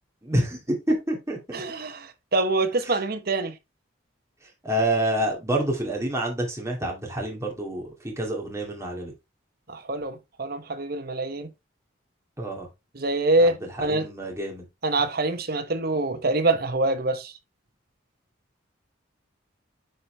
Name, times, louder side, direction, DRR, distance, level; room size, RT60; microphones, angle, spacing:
voice 1, 0.2-1.6 4.6-9.1 12.4-12.7 13.4-13.5 13.8-14.6, right 1 dB, 15° right, 2.2 m, -27 dB
voice 2, 1.5-3.6 9.7-11.5 12.9-14.1 14.8-17.3, right 2 dB, 50° right, 1.0 m, -25 dB
9.4 x 4.3 x 3.2 m
head